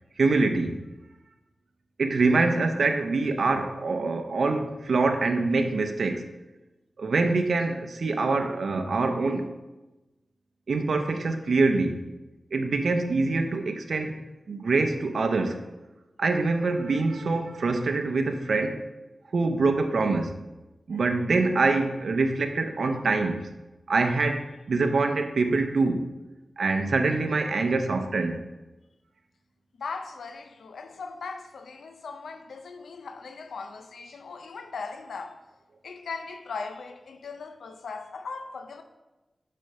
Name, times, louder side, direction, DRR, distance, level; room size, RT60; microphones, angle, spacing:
voice 1, 0.2-0.8 2.0-6.2 7.0-9.5 10.7-12.0 12.5-14.2 14.5-15.6 16.2-18.8 19.3-20.3 20.9-23.4 23.9-26.1 26.6-28.4, right 3 dB, 75° right, 0.6 m, -25 dB
voice 2, 29.8-35.4 35.8-38.8, left 4 dB, 90° left, 0.4 m, -38 dB
6.4 x 4.3 x 5.5 m
cardioid pair, 55°, 0 cm